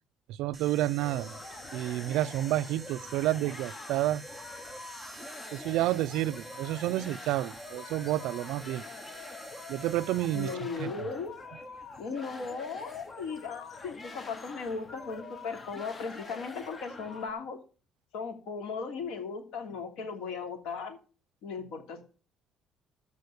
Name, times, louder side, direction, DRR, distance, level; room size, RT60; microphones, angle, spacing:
voice 1, 0.4-1.4 1.7-4.2 5.5-8.8 9.7-10.5 10.8-10.9, right 14 dB, 80° right, 0.4 m, -30 dB
sound 1, 0.5-10.5, right 2 dB, 5° right, 1.7 m, -49 dB
sound 2, 1.0-17.3, left 3 dB, 20° left, 0.9 m, -45 dB
voice 2, 10.3-11.3 12.0-17.6 18.1-21.0 21.4-22.0, left 5 dB, 85° left, 2.9 m, -37 dB
14.5 x 5.0 x 6.8 m
cardioid pair, 170°, 0 cm